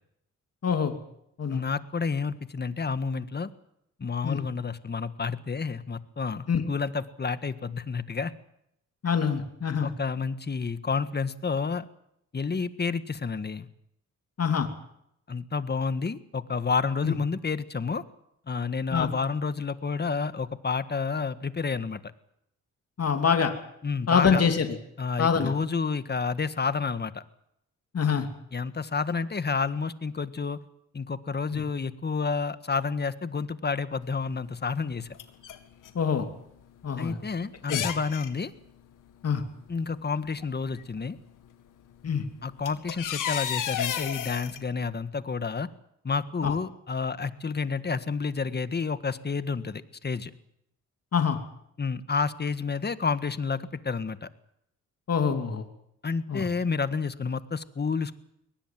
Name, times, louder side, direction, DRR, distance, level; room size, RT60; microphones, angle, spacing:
voice 1, 0.6-1.0 1.4-1.6 4.2-4.4 6.5-6.6 9.0-9.9 14.4-14.7 17.0-17.1 18.9-19.1 23.0-23.5 24.1-24.7 25.2-25.5 27.9-28.3 31.5-31.6 35.9-36.3 36.8-37.2 37.7-37.8 39.2-39.4 42.0-42.2 46.4-46.5 51.1-51.4 55.1-55.6 56.3-56.5, left 6 dB, 50° left, 6 dB, 2.9 m, -25 dB
voice 2, 1.5-3.5 4.0-8.3 9.8-11.8 12.3-13.7 15.3-18.0 18.5-22.0 23.8-24.4 25.0-27.2 28.5-30.6 30.9-35.1 37.0-38.5 39.7-41.2 42.4-45.7 46.0-50.3 51.8-54.3 56.0-58.2, left 5 dB, 35° left, 12 dB, 1.6 m, -30 dB
sound 1, 34.1-34.2 34.9-36.0 36.3-36.4 37.0-37.1 37.6-38.3 39.7-39.8 40.4-40.8 42.0-42.1 42.5-44.6, left 10 dB, 85° left, 2.1 m, -32 dB
22.5 x 19.0 x 7.6 m, 0.78 s
cardioid pair, 75°, 31 cm